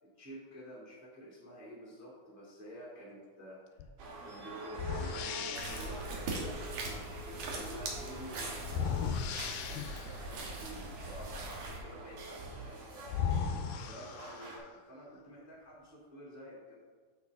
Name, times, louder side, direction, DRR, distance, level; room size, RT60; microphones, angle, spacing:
voice 1, 0.0-16.8, equal, 15° right, -5 dB, 0.6 m, -50 dB
sound 1, 3.8-4.0 4.7-6.0 8.6-10.2 12.5-12.6 13.1-14.7, left 7 dB, 80° left, 2.2 m, -36 dB
sound 2, 4.0-14.6, right 2 dB, 85° right, 3.3 m, -47 dB
sound 3, 5.5-11.8, right 2 dB, 60° right, 2.0 m, -41 dB
8.4 x 6.3 x 3.5 m, 1.5 s
omnidirectional pair, 4.1 m